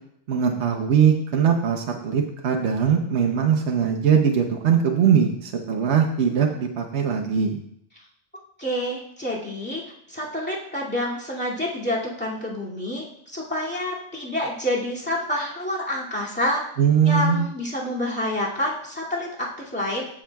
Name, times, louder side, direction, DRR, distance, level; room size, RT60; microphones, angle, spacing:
voice 1, 0.3-7.6 16.8-17.5, right 7 dB, 65° right, 2 dB, 1.1 m, -21 dB
voice 2, 8.6-9.8 10.1-16.6 17.0-20.1, left 1 dB, 10° left, -7 dB, 2.3 m, -28 dB
16.0 x 6.3 x 2.3 m, 0.68 s
omnidirectional pair, 1.3 m